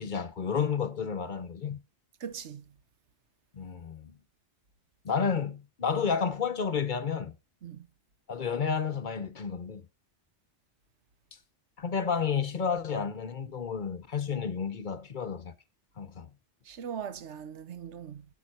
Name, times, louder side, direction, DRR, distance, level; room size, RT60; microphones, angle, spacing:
voice 1, 0.0-1.8 3.5-4.2 5.0-7.3 8.3-9.9 11.8-15.5 16.0-16.3, left 6 dB, 50° left, 0.8 m, -31 dB
voice 2, 2.2-2.6 7.6-7.9 16.7-18.2, right 8 dB, 80° right, 1.1 m, -40 dB
9.1 x 9.1 x 4.1 m
omnidirectional pair, 1.2 m